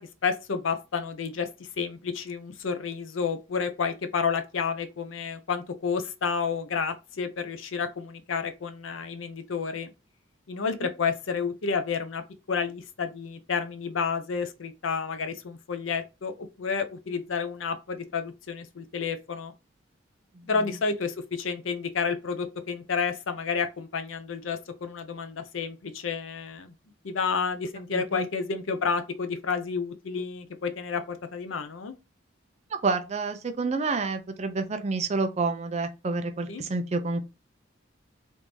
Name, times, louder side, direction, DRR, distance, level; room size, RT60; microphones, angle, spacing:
voice 1, 0.2-9.9 10.5-12.2 12.5-19.5 20.4-26.7 27.0-31.9 36.5-36.6, left 5 dB, 80° left, 0.6 m, -30 dB
voice 2, 27.9-28.3 32.7-37.2, right 3 dB, 35° right, 0.4 m, -29 dB
3.5 x 2.6 x 3.0 m
head